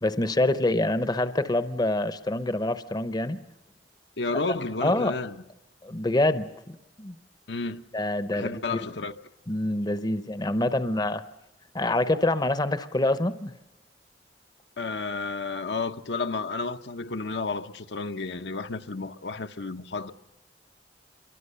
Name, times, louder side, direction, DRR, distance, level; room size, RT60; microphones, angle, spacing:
voice 1, 0.0-3.4 4.3-4.4 4.8-5.1 5.8-7.2 7.9-8.6 9.5-11.2 11.7-13.5, left 1 dB, 25° left, 0.8 m, -26 dB
voice 2, 4.2-5.3 7.5-7.8 8.3-9.1 14.8-20.1, left 3 dB, 75° left, 0.9 m, -31 dB
27.0 x 22.5 x 6.7 m
head